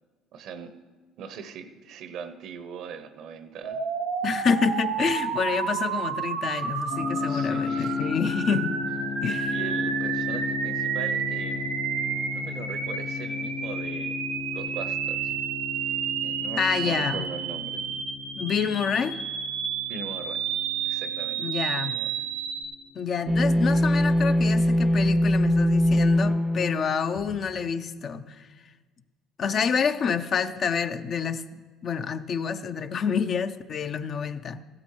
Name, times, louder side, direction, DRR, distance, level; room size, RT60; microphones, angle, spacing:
voice 1, 0.3-0.7 1.2-3.8 7.2-8.1 9.5-11.8 12.3-14.2 14.5-15.3 16.2-17.8 18.8-19.0 19.9-20.4 20.8-21.4 21.7-22.1, right 6 dB, 65° right, 11 dB, 0.8 m, -40 dB
sound 1, 3.6-22.6, right 7 dB, 85° right, 1.4 m, -31 dB
voice 2, 4.2-8.8 9.2-9.6 16.6-17.2 18.3-19.2 21.4-21.9 22.9-28.5 29.4-34.6, left 6 dB, 50° left, 10 dB, 0.5 m, -28 dB
sound 2, 6.9-21.7, left 6 dB, 70° left, 3.8 m, -35 dB
sound 3, 23.3-27.5, equal, 15° right, 0.5 m, -22 dB
15.0 x 12.5 x 3.2 m, 1.4 s
supercardioid pair, 70°, 0 cm